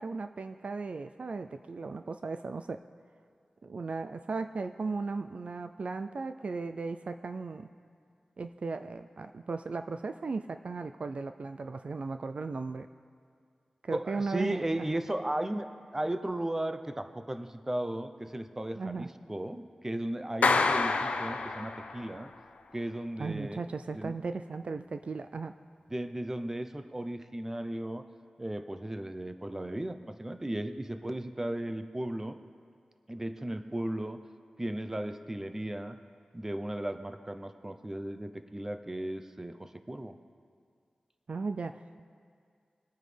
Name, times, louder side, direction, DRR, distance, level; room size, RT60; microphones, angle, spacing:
voice 1, 0.0-2.8 3.6-7.7 8.4-12.9 13.8-14.7 18.7-19.1 23.2-25.5 41.3-42.0, right 4 dB, 60° right, 9 dB, 0.4 m, -36 dB
voice 2, 13.9-22.3 22.7-23.6 23.9-24.1 25.9-28.0 28.4-32.4 33.1-34.2 34.6-36.0 36.3-40.2, right 1 dB, 15° right, 9 dB, 0.6 m, -35 dB
Clapping, 20.4-22.2, left 4 dB, 80° left, 0.7 m, -27 dB
23.0 x 9.0 x 3.4 m, 2.2 s
wide cardioid pair, 100°, 2 cm